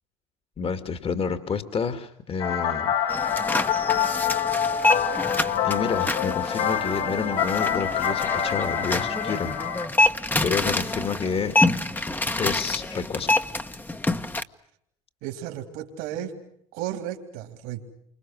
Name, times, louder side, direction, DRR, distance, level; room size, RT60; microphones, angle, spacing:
voice 1, 0.6-2.9 5.6-9.5 10.4-11.5 12.4-13.3, left 6 dB, 40° left, 9 dB, 2.2 m, -29 dB
sound 1, 2.4-9.9, left 8 dB, 75° left, 3.8 m, -26 dB
sound 2, 3.1-14.4, left 2 dB, 10° left, 1.3 m, -27 dB
voice 2, 15.2-16.4 16.7-17.9, right 11 dB, 75° right, 4 dB, 3.6 m, -34 dB
29.0 x 26.0 x 6.3 m, 0.69 s
supercardioid pair, 85°, 15 cm